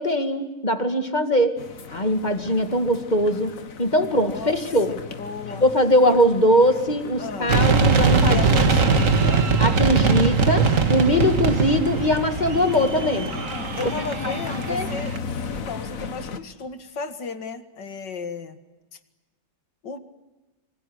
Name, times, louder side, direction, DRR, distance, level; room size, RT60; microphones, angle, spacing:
voice 1, 0.0-1.6 1.9-3.5 3.8-4.9 5.6-8.4 9.6-13.3 13.8-13.9 14.2-14.3 14.7-14.9, equal, 25° left, 8 dB, 2.2 m, -21 dB
sound 1, 1.6-16.4, left 5 dB, 50° left, 1.8 m, -36 dB
voice 2, 4.1-4.5 4.9-5.6 6.1-6.2 7.2-7.7 8.3-9.5 13.5-15.1 15.5-18.6 19.8-20.0, left 5 dB, 80° left, 10 dB, 2.5 m, -34 dB
sound 2, 7.5-15.2, right 4 dB, 50° right, 2.0 m, -21 dB
26.5 x 25.5 x 8.1 m, 1.1 s
omnidirectional pair, 1.9 m